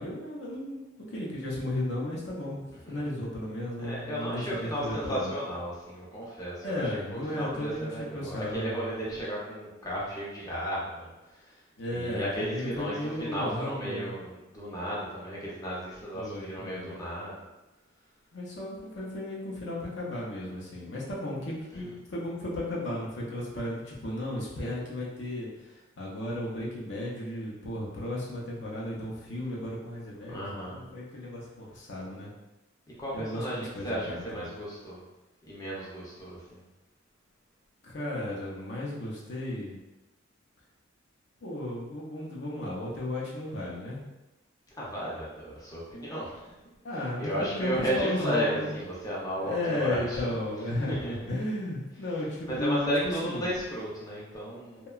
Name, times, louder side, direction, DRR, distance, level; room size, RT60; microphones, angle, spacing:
voice 1, 0.0-2.6 2.9-5.3 6.6-8.8 11.8-14.2 16.1-16.9 18.3-32.3 33.1-34.5 37.8-39.8 41.4-44.0 46.8-48.7 49.4-53.5, left 1 dB, 65° left, -4 dB, 0.6 m, -34 dB
voice 2, 3.8-11.6 11.9-17.4 21.7-21.9 30.3-30.8 33.0-35.0 35.4-36.6 44.8-46.5 46.9-50.3 50.9-51.1 52.5-54.9, equal, 20° left, -7 dB, 0.6 m, -34 dB
sound 1, 48.3-50.2, right 2 dB, 80° right, 0.5 m, -52 dB
2.8 x 2.2 x 2.3 m, 1.0 s
head